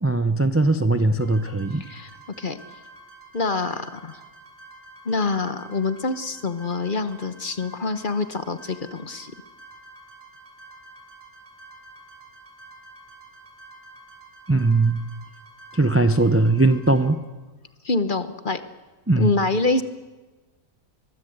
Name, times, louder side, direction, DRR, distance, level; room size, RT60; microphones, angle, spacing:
voice 1, 0.0-1.8 14.5-15.0 15.7-17.2 19.1-19.3, right 2 dB, 20° right, 11 dB, 0.4 m, -19 dB
sound 1, 1.2-17.1, right 2 dB, 70° right, 6.5 m, -48 dB
voice 2, 1.8-2.1 2.4-2.6 3.3-4.2 5.0-9.3 17.9-18.6 19.2-19.8, left 3 dB, 40° left, 11 dB, 1.1 m, -25 dB
23.0 x 22.0 x 8.0 m, 1.2 s
omnidirectional pair, 1.6 m